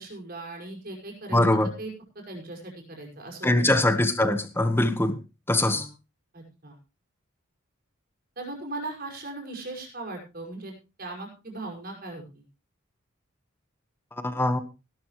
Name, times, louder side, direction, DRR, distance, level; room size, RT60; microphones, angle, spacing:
voice 1, 0.0-1.4 1.8-3.8 5.6-5.9 6.3-6.8 8.4-10.7 11.0-12.4, right 2 dB, 45° right, 2 dB, 5.8 m, -38 dB
voice 2, 1.3-1.7 3.4-5.2 5.5-5.9 14.2-14.6, left 1 dB, 10° left, 10 dB, 1.3 m, -22 dB
18.0 x 12.5 x 3.2 m, 0.30 s
head